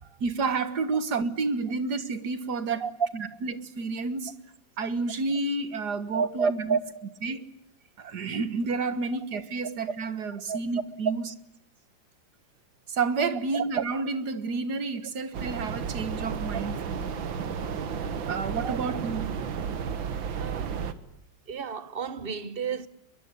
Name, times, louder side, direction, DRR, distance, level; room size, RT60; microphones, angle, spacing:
voice 1, 0.2-2.9 3.1-4.3 4.8-6.8 7.2-7.5 8.0-11.2 12.9-17.1 18.3-19.3, right 4 dB, 60° right, 2.1 m, -30 dB
voice 2, 6.1-7.2 10.5-10.6 18.6-18.8 20.4-20.8 21.5-22.9, right 6 dB, 35° right, 1.1 m, -32 dB
sound 1, 15.3-20.9, right 6 dB, 85° right, 2.2 m, -32 dB
23.0 x 22.5 x 9.9 m
omnidirectional pair, 2.1 m